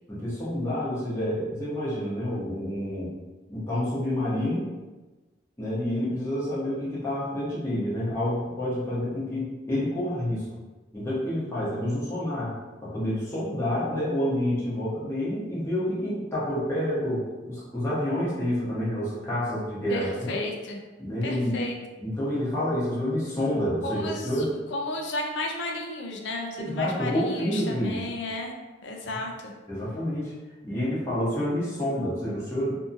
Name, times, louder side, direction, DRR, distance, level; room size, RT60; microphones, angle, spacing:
voice 1, 0.1-3.1 3.5-4.7 5.6-10.4 10.9-12.5 12.8-20.3 21.0-21.6 22.0-24.5 26.6-28.0 29.1-29.2 29.7-30.3 30.6-32.8, left 1 dB, 15° left, -11 dB, 0.8 m, -28 dB
voice 2, 19.9-20.8 21.2-21.8 23.8-24.4 24.7-28.6 28.8-29.3, left 2 dB, 70° left, 1 dB, 0.5 m, -33 dB
2.7 x 2.6 x 2.4 m, 1.2 s
head